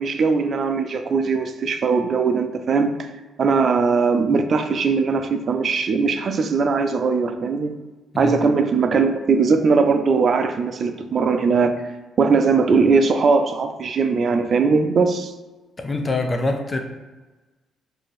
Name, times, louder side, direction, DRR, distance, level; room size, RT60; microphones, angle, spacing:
voice 1, 0.0-2.9 3.4-7.8 8.2-11.7 12.2-15.3, right 4 dB, 50° right, 7 dB, 0.4 m, -20 dB
voice 2, 15.8-16.8, left 2 dB, 25° left, 4 dB, 0.6 m, -24 dB
4.2 x 2.7 x 3.1 m, 1.2 s
cardioid pair, 90°, 0 cm